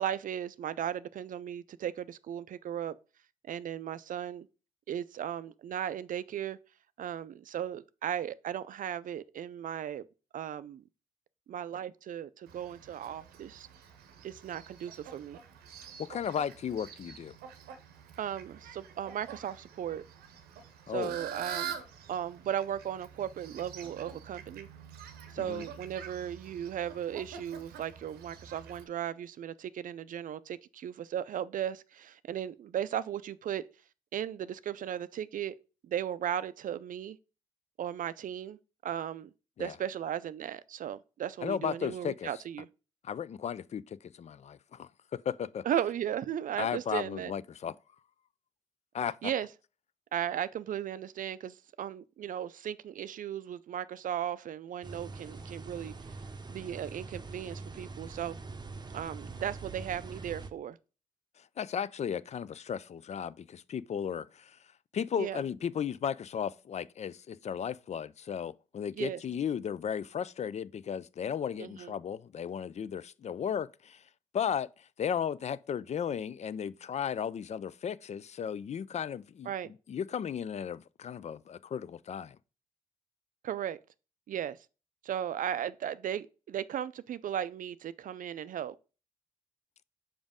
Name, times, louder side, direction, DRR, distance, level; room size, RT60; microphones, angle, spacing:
voice 1, 0.0-3.0 3.4-4.5 4.9-6.6 7.0-10.0 10.3-10.8 11.5-13.7 14.2-15.4 18.2-20.0 20.9-21.8 22.1-24.7 25.3-33.6 34.1-35.6 35.8-37.2 37.8-39.3 39.6-42.7 45.6-47.3 49.2-49.5 50.1-55.9 56.5-58.4 58.9-60.8 65.1-65.4 69.0-69.2 71.6-71.9 79.5-79.7 83.4-83.8 84.3-84.6 85.0-88.7, right 10 dB, 60° right, 0.4 m, -36 dB
Fowl, 12.5-28.8, right 8 dB, 85° right, 0.7 m, -46 dB
voice 2, 16.0-17.3 20.9-21.1 25.4-25.7 39.6-39.8 41.4-42.3 43.0-45.6 46.6-47.7 48.9-49.3 61.4-64.6 64.9-74.0 74.3-79.5 79.9-82.4, left 8 dB, 45° left, 0.4 m, -35 dB
sound 1, 54.8-60.5, right 3 dB, 25° right, 0.7 m, -44 dB
5.2 x 5.0 x 3.6 m
supercardioid pair, 45°, 16 cm